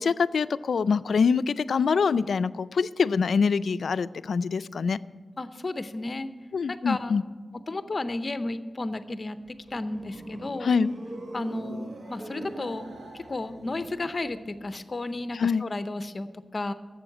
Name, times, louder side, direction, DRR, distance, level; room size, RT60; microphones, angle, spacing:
voice 1, 0.0-5.0 6.5-7.2 10.6-10.9 15.3-15.6, left 5 dB, 85° left, 15 dB, 0.3 m, -24 dB
voice 2, 5.4-6.3 6.7-7.1 7.7-9.4 9.7-10.7 11.3-12.9 13.1-16.3 16.5-16.7, left 2 dB, 40° left, 12 dB, 0.6 m, -33 dB
sound 1, 9.3-14.7, right 2 dB, 70° right, 1.1 m, -42 dB
12.0 x 7.8 x 7.9 m, 1.4 s
wide cardioid pair, 115°, 0 cm